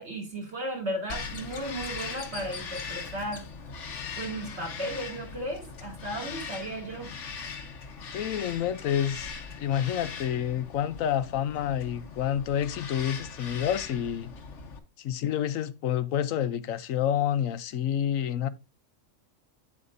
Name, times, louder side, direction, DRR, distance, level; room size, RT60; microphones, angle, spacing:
voice 1, 0.0-3.4 4.2-7.1, right 1 dB, 55° right, 2.9 m, -35 dB
Bird vocalization bird call bird song, 1.1-14.8, left 5 dB, 65° left, 1.3 m, -40 dB
voice 2, 8.1-9.3 9.6-14.3 15.0-18.5, left 10 dB, 85° left, 1.1 m, -28 dB
8.8 x 7.3 x 2.6 m
omnidirectional pair, 1.4 m